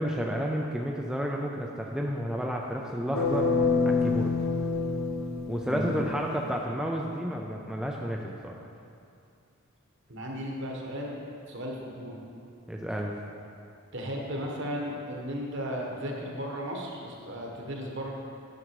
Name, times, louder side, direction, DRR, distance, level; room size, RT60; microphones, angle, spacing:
voice 1, 0.0-3.5 4.0-4.3 5.5-8.5 12.7-13.1, equal, 5° right, -1 dB, 0.4 m, -31 dB
sound 1, 3.1-6.2, left 4 dB, 60° left, 1.0 m, -27 dB
voice 2, 5.6-6.0 10.1-11.2 11.5-12.2 13.9-18.1, equal, 55° right, -1 dB, 1.4 m, -35 dB
9.7 x 6.7 x 4.7 m, 2.5 s
head